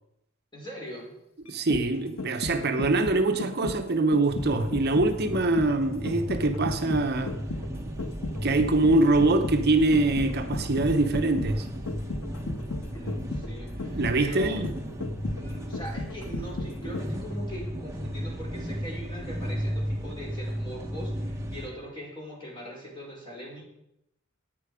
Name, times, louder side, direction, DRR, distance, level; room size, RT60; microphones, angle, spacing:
voice 1, 0.5-1.2 12.9-14.7 15.3-23.6, equal, 25° left, -3 dB, 5.2 m, -41 dB
sound 1, 1.5-17.3 17.7-17.8, left 2 dB, 90° left, 1.3 m, -36 dB
voice 2, 1.5-7.4 8.4-11.7 14.0-14.7, right 2 dB, 50° right, 6 dB, 0.9 m, -24 dB
sound 2, 4.3-21.7, equal, 15° right, 1.2 m, -35 dB
17.0 x 9.2 x 5.0 m, 0.83 s
head